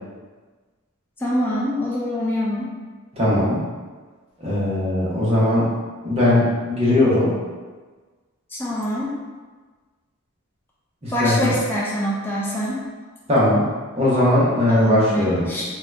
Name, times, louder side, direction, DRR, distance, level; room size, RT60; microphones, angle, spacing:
voice 1, 1.2-2.7 8.5-9.2 11.1-12.8 14.7-15.6, equal, 10° left, -5 dB, 0.3 m, -24 dB
voice 2, 3.1-3.6 4.4-5.7 6.0-7.3 11.0-11.5 13.3-13.7 14.0-15.5, left 1 dB, 30° right, -8 dB, 0.9 m, -19 dB
2.7 x 2.3 x 3.2 m, 1.4 s
head